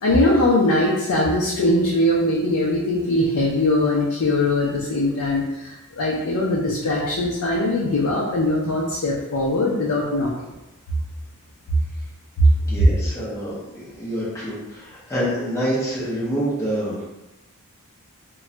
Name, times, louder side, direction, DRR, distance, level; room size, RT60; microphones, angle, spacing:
voice 1, 0.0-10.3 12.8-12.9, left 1 dB, 85° left, -4 dB, 0.5 m, -21 dB
voice 2, 12.6-17.0, equal, 15° left, -9 dB, 0.6 m, -27 dB
2.2 x 2.2 x 3.8 m, 0.99 s
head